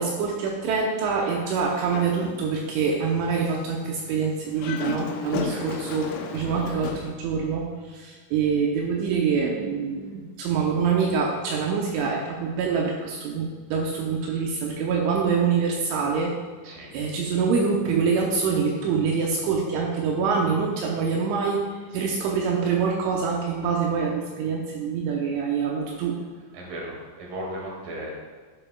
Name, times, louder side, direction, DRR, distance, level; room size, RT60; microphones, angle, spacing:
voice 1, 0.0-16.4 16.9-21.7 21.9-26.2, right 5 dB, 80° right, -1 dB, 3.1 m, -25 dB
Dog, 1.6-2.7 3.1-3.2 4.5-7.1, left 5 dB, 80° left, 2.8 m, -34 dB
voice 2, 26.5-28.1, right 1 dB, 55° right, -3 dB, 3.0 m, -36 dB
14.5 x 6.5 x 2.3 m, 1.5 s
omnidirectional pair, 5.7 m